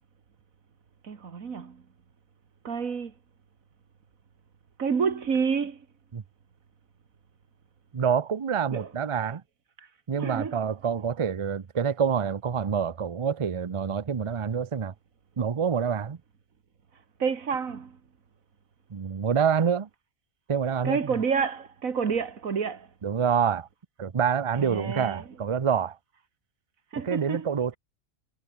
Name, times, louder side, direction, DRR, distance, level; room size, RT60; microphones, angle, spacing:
voice 1, 1.0-1.8 2.6-3.1 4.8-5.9 8.7-8.9 9.8-9.9 10.2-10.6 17.2-18.0 20.8-22.9 24.6-25.4 26.9-27.5, right 6 dB, 75° right, 2.1 m, -29 dB
voice 2, 7.9-9.4 10.1-14.9 15.4-16.2 18.9-19.9 20.5-21.0 23.0-23.7 24.0-26.0 27.1-27.7, right 7 dB, 40° right, 0.5 m, -26 dB
omnidirectional pair, 1.4 m